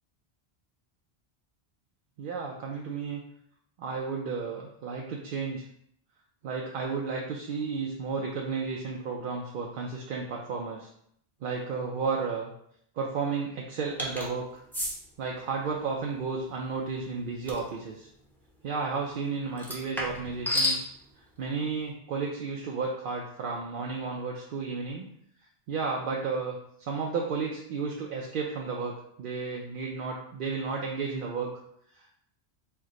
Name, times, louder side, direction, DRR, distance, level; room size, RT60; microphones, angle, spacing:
voice 1, 2.2-3.2 3.8-5.6 6.4-10.9 11.4-12.5 13.0-14.6 15.2-18.1 18.6-20.9 21.4-25.1 25.7-31.5 31.9-32.1, right 4 dB, 60° right, -1 dB, 0.6 m, -33 dB
sound 1, 14.0-14.3 14.7-14.9 17.5-17.7 19.6-20.8, left 1 dB, ahead, 0.6 m, -30 dB
4.5 x 2.1 x 3.7 m, 0.70 s
omnidirectional pair, 1.1 m